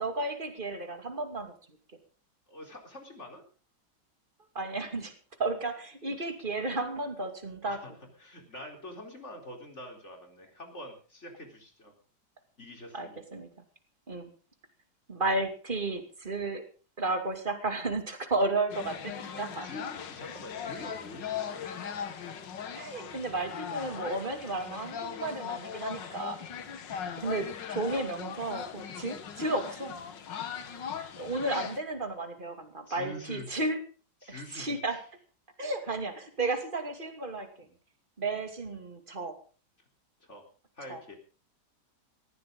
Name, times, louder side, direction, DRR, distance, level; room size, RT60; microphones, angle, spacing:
voice 1, 0.0-1.5 4.5-5.1 5.4-7.8 12.9-13.5 14.1-14.3 15.1-16.6 17.0-19.7 20.8-21.0 22.7-26.4 27.2-30.0 31.2-33.8 34.3-35.0 35.6-37.5 38.2-39.4 40.9-41.0, right 2 dB, 25° right, 6 dB, 2.7 m, -33 dB
voice 2, 2.5-3.4 7.6-7.9 8.2-11.9 12.6-13.2 19.6-21.6 32.9-33.5 34.2-35.0 37.6-37.7 40.2-40.4 40.8-41.1, left 1 dB, 40° left, 3 dB, 4.4 m, -45 dB
sound 1, 18.7-31.8, left 8 dB, 80° left, 2.0 m, -39 dB
18.5 x 15.5 x 3.9 m, 0.38 s
omnidirectional pair, 1.9 m